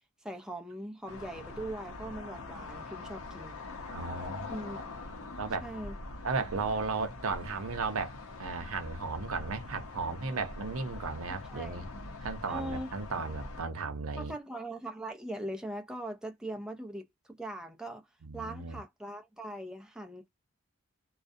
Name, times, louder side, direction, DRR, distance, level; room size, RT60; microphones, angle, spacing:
voice 1, 0.2-3.6 4.5-4.8 5.6-6.0 11.3-11.8 12.5-12.9 14.2-18.1 18.3-20.3, right 1 dB, 5° right, 0.4 m, -40 dB
sound 1, 1.1-13.6, left 2 dB, 75° left, 0.7 m, -43 dB
voice 2, 3.9-4.5 5.4-5.6 6.2-11.9 12.2-14.3 18.2-18.8, right 4 dB, 85° right, 0.7 m, -35 dB
2.3 x 2.1 x 2.6 m
head